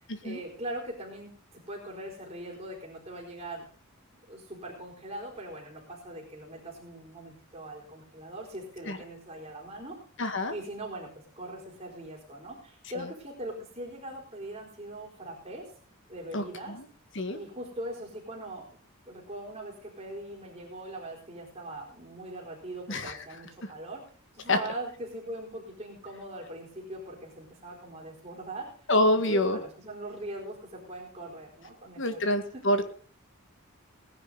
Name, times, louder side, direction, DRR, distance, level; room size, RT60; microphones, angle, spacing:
voice 1, 0.2-3.6 4.3-10.0 10.5-11.1 11.4-15.7 16.1-16.8 17.3-18.7 19.1-24.0 24.3-28.7 29.1-32.6, right 1 dB, 25° right, -5 dB, 4.2 m, -41 dB
voice 2, 10.2-10.5 12.9-13.1 16.3-16.8 17.1-17.4 22.9-23.1 24.5-24.6 28.9-29.6 32.0-32.9, left 1 dB, 55° left, 8 dB, 1.8 m, -27 dB
19.0 x 10.5 x 4.0 m, 0.43 s
head